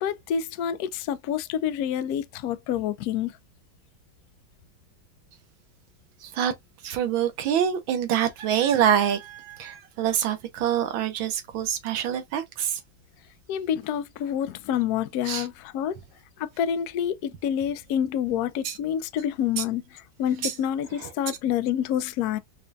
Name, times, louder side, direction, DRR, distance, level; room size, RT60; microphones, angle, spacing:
voice 1, 0.0-3.3 13.5-16.0 16.6-19.8 20.2-22.4, left 9 dB, 80° left, 0.8 m, -27 dB
voice 2, 6.2-6.5 6.8-12.8 15.2-15.5 18.6-18.8 19.6-19.7 20.4-20.6 21.0-21.1, right 9 dB, 75° right, 1.6 m, -26 dB
5.3 x 2.3 x 2.6 m
omnidirectional pair, 2.2 m